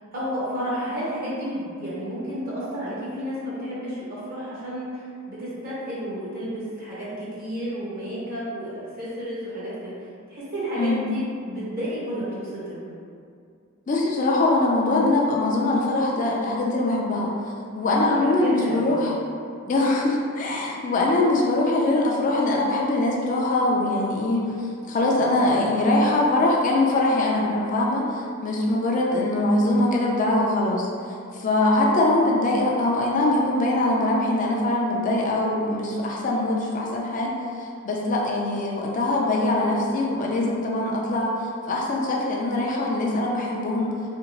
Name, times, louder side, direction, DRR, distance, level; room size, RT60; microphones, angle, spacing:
voice 1, 0.1-10.0 10.3-12.8 18.2-18.9, equal, 45° right, -8 dB, 0.7 m, -31 dB
voice 2, 13.9-17.3 17.7-19.1 19.7-37.3 37.6-43.9, left 2 dB, 35° left, -2 dB, 0.3 m, -22 dB
2.8 x 2.6 x 2.9 m, 2.4 s
head